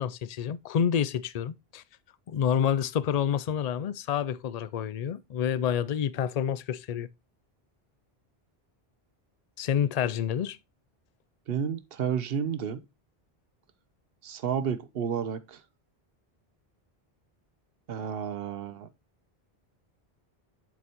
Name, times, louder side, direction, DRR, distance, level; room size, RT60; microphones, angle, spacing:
voice 1, 0.0-1.8 2.3-7.1 9.6-10.6, left 8 dB, 55° left, 0.5 m, -28 dB
voice 2, 11.5-12.8 14.2-15.6 17.9-18.9, right 7 dB, 70° right, 1.0 m, -31 dB
7.8 x 6.1 x 2.9 m
omnidirectional pair, 1.0 m